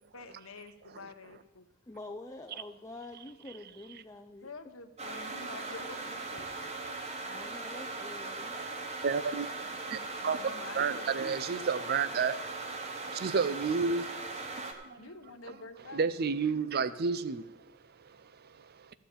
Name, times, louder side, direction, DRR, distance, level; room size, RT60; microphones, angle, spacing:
voice 1, 0.1-1.7 4.4-6.7 10.2-11.9 15.0-16.0, left 3 dB, 80° left, 1.0 m, -48 dB
voice 2, 1.9-4.5 7.3-8.6, left 2 dB, 15° left, 0.5 m, -46 dB
sound 1, 5.0-14.7, right 3 dB, 30° right, 1.3 m, -39 dB
voice 3, 9.0-10.4 10.8-14.1 14.7-15.0 15.9-17.5 18.1-18.3 18.6-18.8, right 5 dB, 50° right, 0.5 m, -31 dB
14.0 x 4.7 x 8.9 m
head